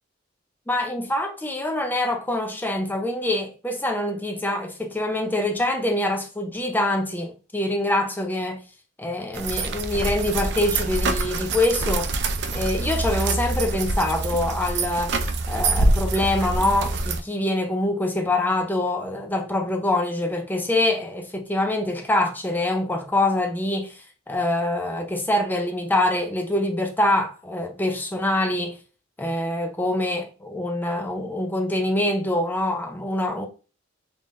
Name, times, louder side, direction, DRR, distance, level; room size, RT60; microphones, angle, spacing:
voice 1, 0.7-8.6 9.0-12.1 12.5-15.2 15.5-28.8 29.2-33.5, left 1 dB, 10° left, 0.5 m, -25 dB
sound 1, 9.3-17.2, right 2 dB, 55° right, 0.5 m, -25 dB
3.6 x 3.2 x 2.5 m
head